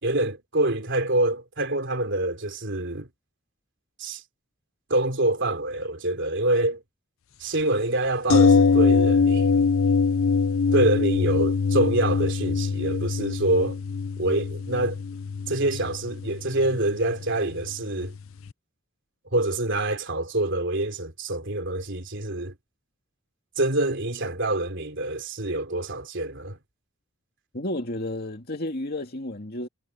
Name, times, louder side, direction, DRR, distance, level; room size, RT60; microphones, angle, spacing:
voice 1, 0.0-3.1 4.0-4.2 4.9-6.8 7.4-9.7 10.7-13.8 14.2-15.0 15.5-18.1 19.3-22.5 23.6-26.6, right 2 dB, 60° right, 3.6 m, -26 dB
sound 1, 8.3-18.2 18.5-18.6, left 5 dB, 70° left, 0.5 m, -23 dB
voice 2, 27.5-29.7, left 1 dB, 50° left, 2.4 m, -31 dB
head